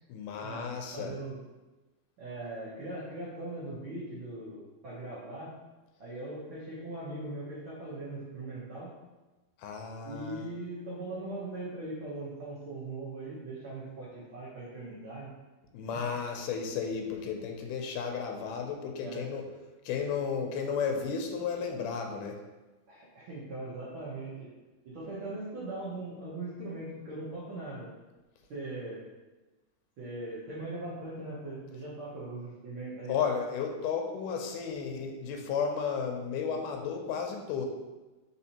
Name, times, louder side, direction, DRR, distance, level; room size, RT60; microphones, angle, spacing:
voice 1, 0.1-1.1 9.6-10.5 15.7-19.4 19.9-22.4 33.1-37.7, left 6 dB, 85° left, 3 dB, 2.1 m, -33 dB
voice 2, 0.9-1.4 2.2-5.5 6.0-8.9 10.0-15.3 15.9-16.0 19.0-19.2 22.9-24.5 24.8-27.9 28.5-29.0 30.0-33.1, right 2 dB, 85° right, -8 dB, 1.1 m, -40 dB
4.2 x 4.1 x 2.8 m, 1.1 s
omnidirectional pair, 3.7 m